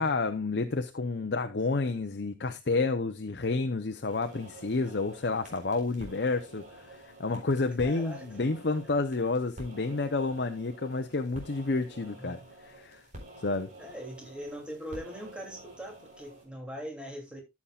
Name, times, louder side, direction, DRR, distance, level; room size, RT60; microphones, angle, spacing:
voice 1, 0.0-13.0 13.4-13.7, left 3 dB, 65° left, 0.7 m, -30 dB
sound 1, 4.1-16.5, right 1 dB, 45° right, 4.2 m, -49 dB
voice 2, 7.8-8.4 8.8-9.0 12.2-12.4 13.8-17.4, equal, 5° right, 2.7 m, -41 dB
14.0 x 7.2 x 2.4 m
head